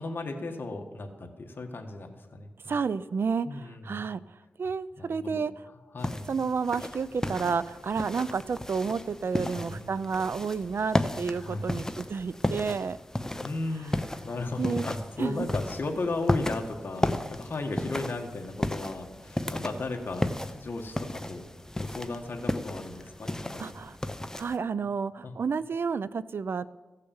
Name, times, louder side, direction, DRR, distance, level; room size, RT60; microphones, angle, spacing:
voice 1, 0.0-2.7 3.4-4.1 5.0-5.4 5.9-6.3 9.4-9.9 11.3-11.8 13.4-21.4 21.8-23.7 25.2-25.4, left 2 dB, 55° left, 2 dB, 1.6 m, -36 dB
voice 2, 2.7-4.2 4.6-5.5 6.3-13.0 14.6-14.9 15.2-15.5 23.6-24.0 24.3-26.7, right 5 dB, 65° right, 16 dB, 0.5 m, -30 dB
sound 1, 6.0-24.6, left 1 dB, 15° left, 0.8 m, -34 dB
15.0 x 6.6 x 7.1 m, 1.2 s
cardioid pair, 70°, 4 cm